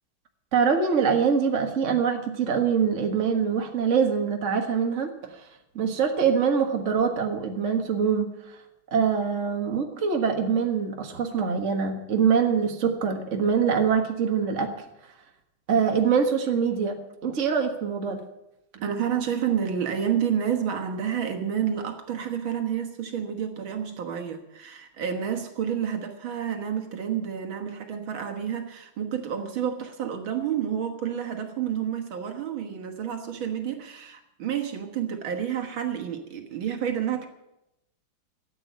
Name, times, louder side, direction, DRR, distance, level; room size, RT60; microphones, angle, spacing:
voice 1, 0.5-5.4 5.8-8.6 8.9-14.7 15.7-18.2, right 6 dB, 40° right, 3 dB, 1.8 m, -24 dB
voice 2, 18.8-37.3, right 8 dB, 75° right, 4 dB, 2.2 m, -29 dB
13.5 x 8.6 x 9.3 m, 0.89 s
omnidirectional pair, 2.2 m